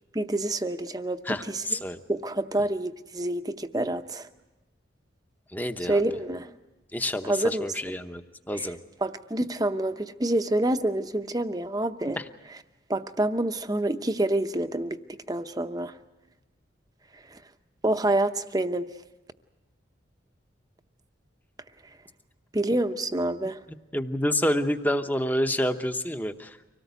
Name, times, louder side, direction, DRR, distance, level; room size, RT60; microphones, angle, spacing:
voice 1, 0.1-1.6 2.1-4.3 5.9-6.5 7.2-7.7 9.0-12.2 12.9-15.0 15.3-15.9 17.8-18.8 22.5-23.6, right 1 dB, 20° right, 9 dB, 0.7 m, -27 dB
voice 2, 1.3-2.0 5.5-6.0 6.9-8.2 8.5-8.8 12.2-12.3 23.7-26.6, equal, 10° left, 8 dB, 0.8 m, -28 dB
25.0 x 18.0 x 8.2 m, 1.1 s
head